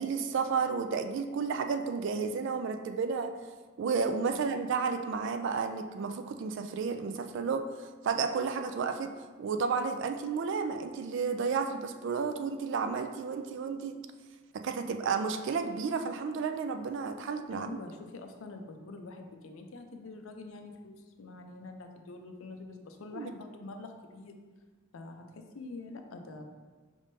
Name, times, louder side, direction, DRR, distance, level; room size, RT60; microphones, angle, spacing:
voice 1, 0.0-3.3 3.8-7.7 8.0-9.1 9.4-14.0 14.6-17.7 23.1-23.3, right 5 dB, 60° right, 7 dB, 0.3 m, -32 dB
voice 2, 17.5-24.4 24.9-26.4, left 3 dB, 70° left, 5 dB, 0.5 m, -45 dB
5.2 x 3.6 x 2.6 m, 1.4 s
head